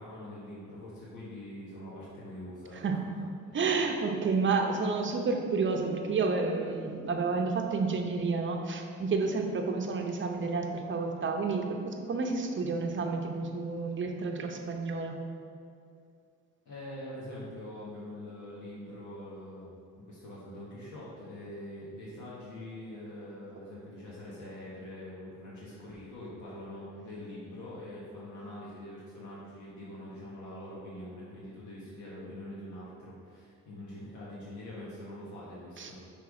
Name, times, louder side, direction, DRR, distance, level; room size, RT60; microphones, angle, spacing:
voice 1, 0.0-3.6 16.6-19.7 20.0-36.0, left 1 dB, 75° left, -7 dB, 1.5 m, -44 dB
voice 2, 3.5-15.2 35.8-35.9, right 4 dB, 40° right, 3 dB, 0.7 m, -30 dB
6.0 x 3.5 x 4.8 m, 2.4 s
cardioid pair, 90°, 30 cm